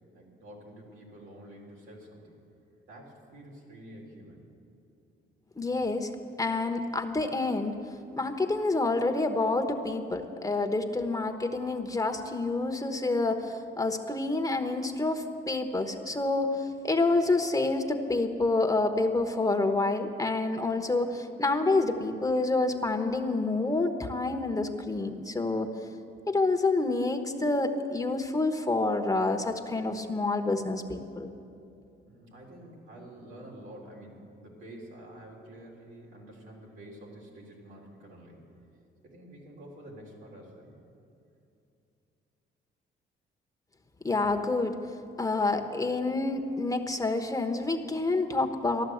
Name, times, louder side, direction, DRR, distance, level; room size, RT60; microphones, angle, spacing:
voice 1, 0.1-2.4 2.9-4.4 32.0-38.4 39.0-40.8, right 1 dB, 90° right, -3 dB, 3.7 m, -48 dB
voice 2, 5.6-6.1 6.4-7.8 8.2-25.7 26.3-31.3 44.0-44.8 45.2-48.8, left 2 dB, 15° left, 6 dB, 1.1 m, -28 dB
14.5 x 11.5 x 7.9 m, 2.6 s
cardioid pair, 90°, 20 cm